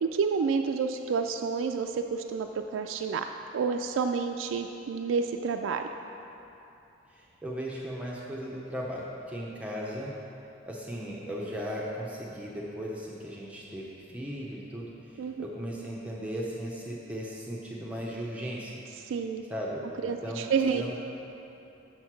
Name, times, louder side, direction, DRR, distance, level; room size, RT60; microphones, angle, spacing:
voice 1, 0.0-3.2 3.5-5.9 15.2-15.4 19.0-19.4 20.0-20.8, right 5 dB, 85° right, 5 dB, 0.3 m, -29 dB
voice 2, 7.1-10.1 10.7-18.7 19.5-20.4 20.7-20.9, equal, 5° right, -4 dB, 0.7 m, -37 dB
6.5 x 6.3 x 6.0 m, 2.9 s
head